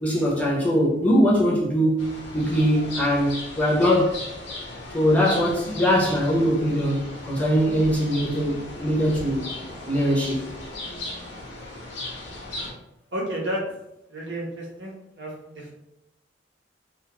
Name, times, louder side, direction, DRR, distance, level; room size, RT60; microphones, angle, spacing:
voice 1, 0.0-4.2 4.9-9.4 9.9-10.5, equal, 10° left, 0.5 m, -22 dB
sound 1, 2.0-12.7, left 2 dB, 80° left, 0.7 m, -37 dB
voice 2, 13.1-13.6 14.1-15.7, equal, 75° right, 0.8 m, -32 dB
2.4 x 2.2 x 2.9 m
head